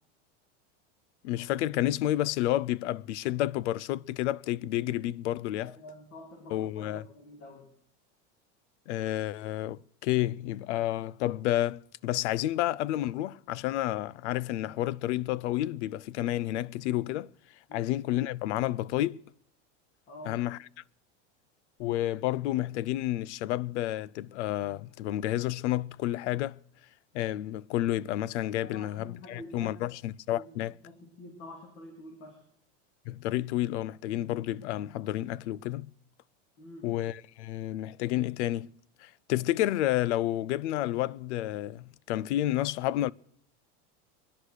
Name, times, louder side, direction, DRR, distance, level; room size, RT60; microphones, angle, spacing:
voice 1, 1.2-5.7 6.5-7.0 8.9-17.3 17.7-19.2 20.3-20.6 21.8-26.6 27.1-30.7 33.1-35.9 36.8-38.7 39.0-43.1, left 14 dB, 85° left, 0.6 m, -30 dB
voice 2, 5.6-7.7 17.7-17.9 20.1-20.5 28.6-29.8 30.3-32.4 36.6-36.9, left 1 dB, 35° left, 2.9 m, -47 dB
22.5 x 10.0 x 6.5 m
supercardioid pair, 165°, 34 cm